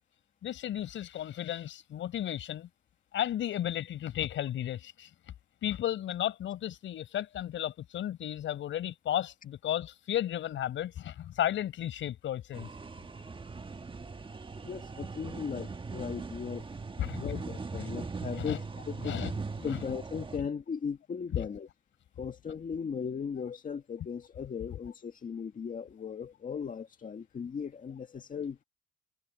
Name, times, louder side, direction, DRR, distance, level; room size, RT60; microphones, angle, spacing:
voice 1, 0.4-2.7 3.1-5.1 5.6-12.7 17.0-17.4 17.7-18.0 18.4-18.6 19.0-19.3 19.7-19.8 21.3-21.5, left 11 dB, 75° left, 6.3 m, -34 dB
sound 1, 12.5-20.4, right 4 dB, 25° right, 1.4 m, -40 dB
voice 2, 14.6-16.7 17.0-19.2 19.6-21.7 22.2-28.6, left 6 dB, 45° left, 1.8 m, -37 dB
cardioid pair, 90°, 20 cm